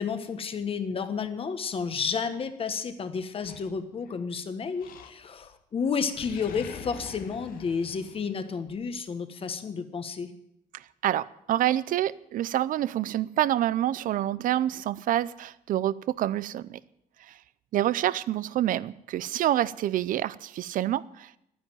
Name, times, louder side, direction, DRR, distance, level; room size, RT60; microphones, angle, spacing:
voice 1, 0.0-10.3, left 6 dB, 40° left, 1.4 m, -31 dB
Animal, 3.4-4.3 4.8-5.5 5.8-8.8, left 7 dB, 80° left, 1.4 m, -45 dB
voice 2, 10.7-16.8 17.2-17.4 17.7-21.3, right 12 dB, 70° right, 0.5 m, -27 dB
11.5 x 10.5 x 8.9 m
cardioid pair, 135°, 15 cm